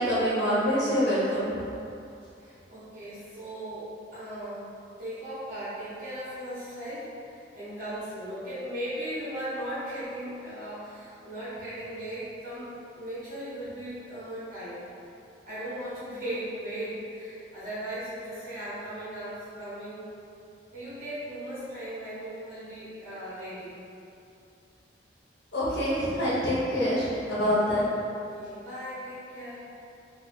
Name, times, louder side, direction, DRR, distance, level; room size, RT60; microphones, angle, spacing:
voice 1, 0.0-1.5 25.5-27.8, equal, 75° left, -10 dB, 1.0 m, -25 dB
voice 2, 2.4-3.9 4.1-4.6 5.0-14.8 15.4-20.0 20.7-23.7 28.3-29.6, right 1 dB, 50° right, -14 dB, 1.2 m, -37 dB
2.6 x 2.6 x 4.1 m, 2.7 s
head